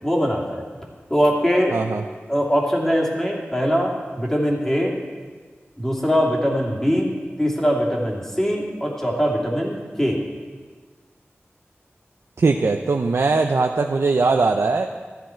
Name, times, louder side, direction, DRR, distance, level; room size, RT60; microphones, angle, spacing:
voice 1, 0.0-0.6 1.1-1.8 2.3-4.9 5.8-7.1 7.4-10.2, equal, 10° left, -3 dB, 2.5 m, -22 dB
voice 2, 1.7-2.0 12.4-14.9, right 3 dB, 75° right, 4 dB, 0.5 m, -20 dB
14.0 x 10.5 x 4.5 m, 1.5 s
wide cardioid pair, 75°, 5 cm